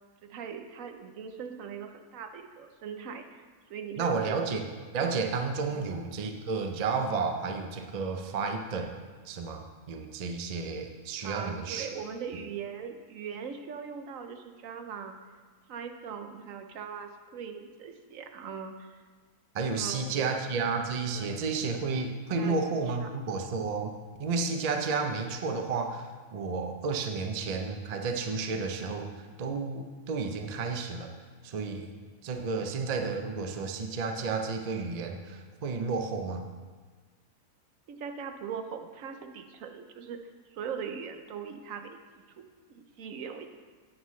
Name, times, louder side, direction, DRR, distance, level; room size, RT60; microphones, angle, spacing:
voice 1, 0.2-3.4 3.7-4.4 5.7-5.9 11.2-15.2 15.7-19.0 19.8-20.3 21.2-21.4 22.4-22.6 23.0-23.1 37.9-40.2 40.5-42.0 42.4-43.5, right 7 dB, 65° right, 6 dB, 1.0 m, -40 dB
voice 2, 4.0-4.7 4.9-11.9 19.5-31.1 31.4-31.9 32.2-36.5, right 4 dB, 85° right, 4 dB, 0.3 m, -32 dB
9.3 x 9.0 x 3.2 m, 1.5 s
omnidirectional pair, 1.7 m